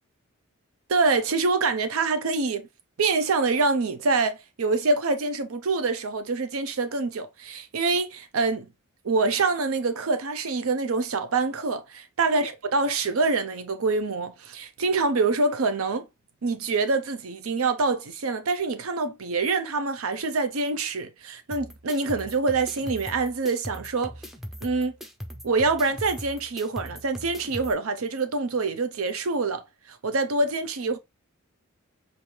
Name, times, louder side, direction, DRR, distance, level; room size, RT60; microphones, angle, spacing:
voice 1, 0.9-2.7 3.0-8.7 9.0-16.1 16.4-24.1 24.6-24.9 25.4-29.6 29.9-31.0, right 3 dB, 85° right, 0.6 m, -25 dB
sound 1, 21.5-27.7, equal, ahead, 0.5 m, -40 dB
4.6 x 2.7 x 3.0 m
head